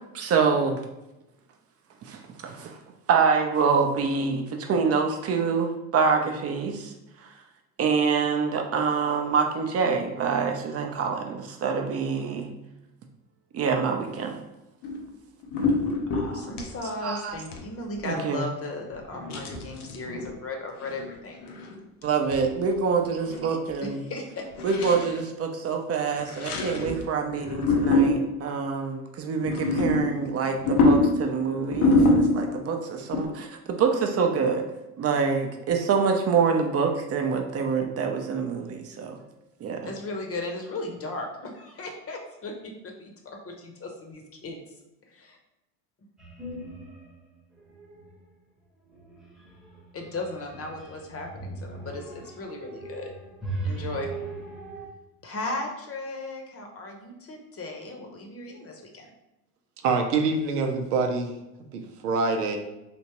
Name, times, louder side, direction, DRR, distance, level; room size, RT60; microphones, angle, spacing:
voice 1, 0.1-0.8 2.0-2.8 3.1-6.9 7.8-12.5 13.5-14.3 17.0-17.3 18.0-18.4 22.0-24.0 24.6-34.6 35.0-39.2 39.6-39.9, right 5 dB, 35° right, 4 dB, 0.6 m, -26 dB
sound 1, 14.8-15.1 15.4-16.7 17.3-17.6 18.0-18.1 19.2-20.3 20.8-21.1 21.4-21.8 22.3-22.4 22.8-22.9 23.0-23.5 23.7-23.8 24.6-25.2 26.2-27.0 27.4-28.5 29.4-32.7 33.1-33.3, left 2 dB, 75° left, 0.7 m, -25 dB
voice 2, 16.1-21.4 23.8-24.5 39.8-44.6 45.1-45.4 49.9-53.1 53.6-54.1 55.2-59.1, left 2 dB, 30° left, 2 dB, 0.9 m, -36 dB
sound 2, 46.2-47.2 47.5-48.1 48.9-54.9, right 2 dB, ahead, 0.9 m, -38 dB
voice 3, 59.8-61.4 61.7-62.6, right 4 dB, 85° right, 4 dB, 0.6 m, -25 dB
3.4 x 2.8 x 2.9 m, 0.94 s
hypercardioid pair, 70°, 45 cm